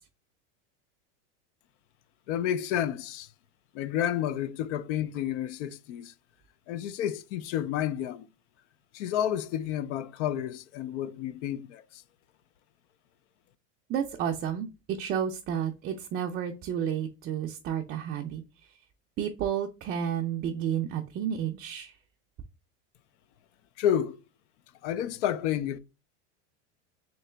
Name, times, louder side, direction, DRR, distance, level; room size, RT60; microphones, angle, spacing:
voice 1, 2.3-3.3 3.7-6.1 6.7-8.3 8.9-12.0 23.8-24.2 24.8-25.8, left 10 dB, 70° left, 0.5 m, -30 dB
voice 2, 13.9-18.4 19.2-21.9, right 9 dB, 30° right, 0.4 m, -31 dB
3.8 x 2.9 x 3.3 m
supercardioid pair, 135°, 36 cm